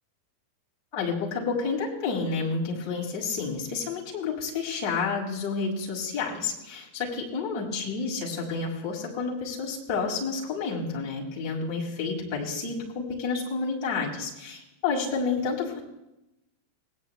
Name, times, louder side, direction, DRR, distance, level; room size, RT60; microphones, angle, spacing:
voice 1, 0.9-15.8, left 4 dB, 40° left, -4 dB, 6.4 m, -30 dB
20.5 x 10.5 x 3.4 m, 0.90 s
figure-of-eight pair, 90°, 0 cm